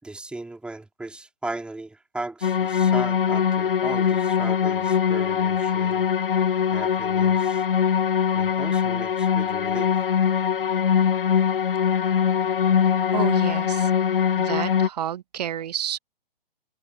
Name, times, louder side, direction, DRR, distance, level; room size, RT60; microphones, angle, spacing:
voice 1, 0.0-6.1 6.7-7.6 8.3-9.9, right 2 dB, 5° right, 3.2 m, -37 dB
sound 1, 2.4-14.9, left 7 dB, 65° left, 0.7 m, -22 dB
voice 2, 13.1-13.9 14.4-16.0, right 10 dB, 45° right, 1.0 m, -30 dB
figure-of-eight pair, 130°, 29 cm